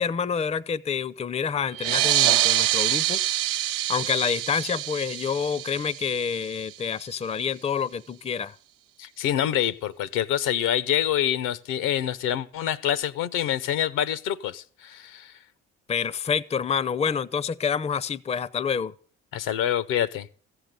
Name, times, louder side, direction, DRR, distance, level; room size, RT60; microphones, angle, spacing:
voice 1, 0.0-3.2 3.9-8.5 15.9-18.9, left 6 dB, 20° left, 0.5 m, -27 dB
sound 1, 1.7-6.9, right 13 dB, 70° right, 0.6 m, -25 dB
voice 2, 9.0-15.3 19.3-20.3, left 10 dB, 75° left, 0.8 m, -26 dB
14.5 x 8.0 x 6.6 m
hypercardioid pair, 55°, 33 cm